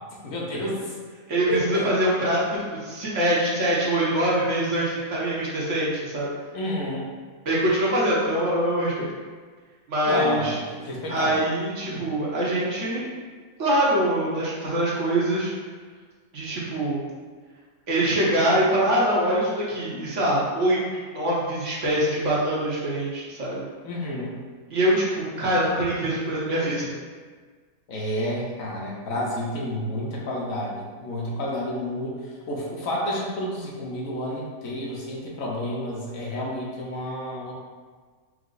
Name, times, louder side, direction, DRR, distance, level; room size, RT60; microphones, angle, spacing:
voice 1, 0.2-1.0 1.5-1.9 6.5-7.1 10.1-11.5 11.9-12.0 23.8-24.3 27.9-37.5, left 1 dB, 70° left, -3 dB, 1.1 m, -30 dB
voice 2, 1.3-2.4 2.8-6.3 7.4-9.1 9.9-10.6 11.1-13.1 13.6-15.5 16.3-17.0 17.9-20.8 21.0-23.7 24.7-26.9, right 1 dB, 60° right, -6 dB, 1.2 m, -24 dB
4.7 x 2.1 x 3.8 m, 1.5 s
omnidirectional pair, 1.5 m